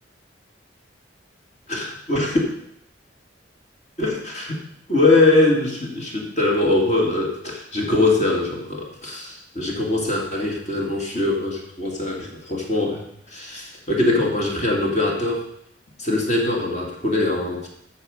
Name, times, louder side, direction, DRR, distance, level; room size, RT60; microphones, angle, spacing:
voice 1, 1.7-2.4 4.0-4.6 4.9-15.5 16.0-17.7, left 2 dB, 40° left, -1 dB, 2.6 m, -22 dB
9.8 x 6.8 x 6.6 m, 0.74 s
head